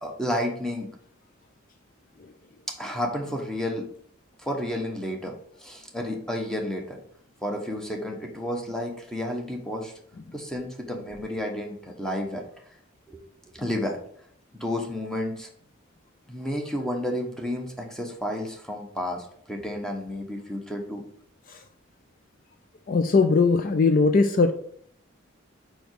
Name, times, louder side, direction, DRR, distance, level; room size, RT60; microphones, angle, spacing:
voice 1, 0.0-0.9 2.8-3.9 4.4-5.3 5.6-7.0 7.4-9.9 10.3-12.4 13.1-13.2 13.5-14.0 14.5-15.5 16.3-21.0, left 1 dB, 5° left, 1 dB, 1.1 m, -31 dB
voice 2, 22.9-24.5, left 4 dB, 45° left, 7 dB, 0.4 m, -20 dB
5.2 x 5.0 x 4.7 m, 0.63 s
head